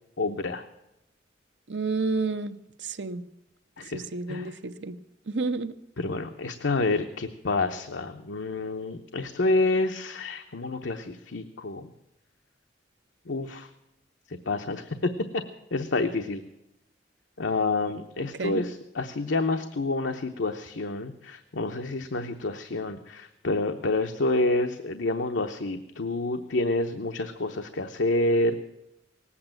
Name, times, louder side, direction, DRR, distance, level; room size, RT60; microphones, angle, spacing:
voice 1, 0.2-0.7 3.8-4.0 4.3-4.5 6.0-11.9 13.3-13.7 14.5-15.1 15.7-16.4 17.4-28.6, left 2 dB, 85° left, 6 dB, 0.8 m, -28 dB
voice 2, 1.7-3.2 3.8-5.0 5.3-5.8 18.2-18.6, right 3 dB, 75° right, 10 dB, 0.8 m, -31 dB
18.5 x 8.6 x 8.9 m, 0.91 s
head